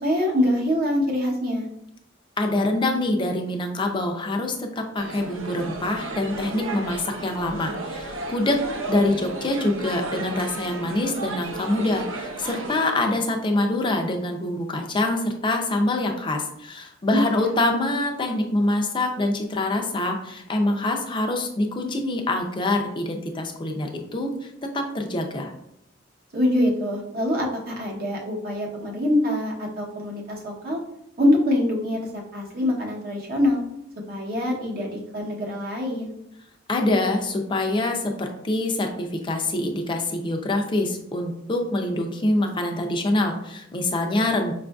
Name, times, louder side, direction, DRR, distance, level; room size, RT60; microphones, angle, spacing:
voice 1, 0.0-1.7 17.1-17.5 26.3-30.8 31.2-32.0 32.3-33.6 34.1-36.1, left 1 dB, 50° right, -1 dB, 0.8 m, -24 dB
voice 2, 2.4-8.6 8.9-24.3 24.6-25.5 36.7-44.5, left 2 dB, 25° left, 3 dB, 0.5 m, -25 dB
sound 1, 5.0-12.8, right 2 dB, 80° right, 0.6 m, -33 dB
5.3 x 2.5 x 2.3 m, 0.78 s
head